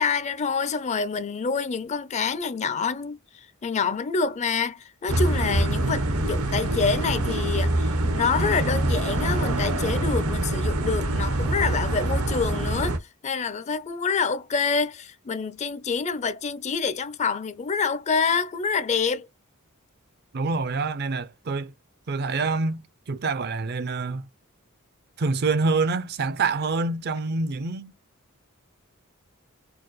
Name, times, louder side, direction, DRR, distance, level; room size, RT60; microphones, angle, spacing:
voice 1, 0.0-3.2 3.6-19.3, left 5 dB, 30° left, 0.4 m, -27 dB
sound 1, 5.1-13.0, right 1 dB, 80° right, 0.9 m, -25 dB
voice 2, 20.3-21.7 22.1-24.3 25.2-27.9, right 3 dB, 45° right, 0.5 m, -26 dB
4.5 x 2.2 x 3.0 m
head